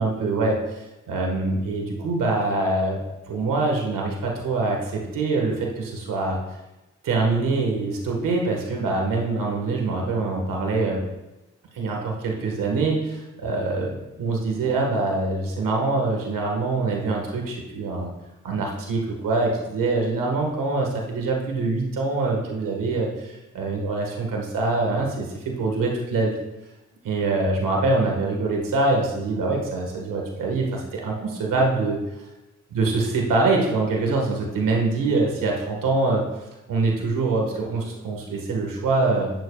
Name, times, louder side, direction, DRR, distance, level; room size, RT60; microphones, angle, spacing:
voice 1, 0.0-3.0 3.3-6.4 7.0-11.0 11.7-18.1 18.4-26.4 27.0-32.0 32.7-36.2 36.7-39.3, right 3 dB, 85° right, 0 dB, 1.6 m, -24 dB
17.5 x 7.3 x 2.4 m, 1.0 s
supercardioid pair, 40°, 32 cm